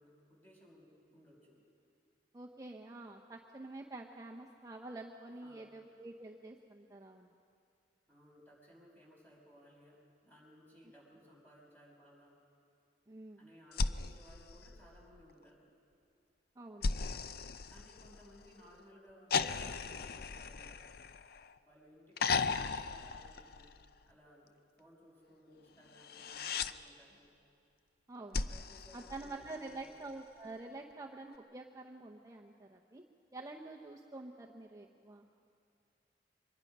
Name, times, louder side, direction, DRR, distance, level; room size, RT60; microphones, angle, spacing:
voice 1, 0.0-1.6 5.3-5.7 8.1-10.0 10.2-12.4 13.4-15.7 17.7-20.8 21.6-23.7 24.1-24.5 24.8-27.3 28.4-30.1, equal, 10° left, -3 dB, 5.7 m, -61 dB
voice 2, 2.3-7.3 13.1-13.5 16.6-16.9 28.1-28.4 28.9-33.0 33.3-35.3, right 2 dB, 20° right, 0 dB, 0.8 m, -48 dB
sound 1, 13.7-15.3 16.8-18.5 19.3-21.6 22.2-24.0 26.0-26.7 28.3-29.8 31.3-31.4, left 4 dB, 60° left, 0.5 m, -37 dB
24.0 x 21.0 x 5.4 m, 2.6 s
head